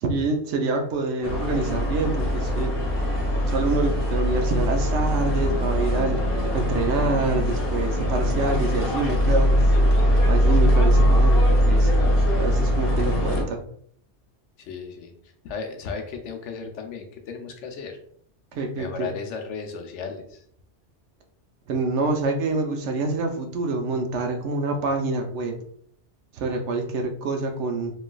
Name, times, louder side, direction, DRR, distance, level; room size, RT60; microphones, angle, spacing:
voice 1, 0.0-2.7 3.5-6.2 6.5-9.7 10.2-11.9 12.4-13.6 18.5-19.1 21.7-25.6 26.3-27.9, right 3 dB, 85° right, 4 dB, 0.9 m, -26 dB
sound 1, 1.2-13.4, equal, 60° left, 0.9 m, -21 dB
voice 2, 14.6-15.1 15.4-18.0 18.8-20.4, left 5 dB, 90° left, 4 dB, 0.9 m, -35 dB
3.1 x 2.3 x 2.2 m, 0.64 s
omnidirectional pair, 1.2 m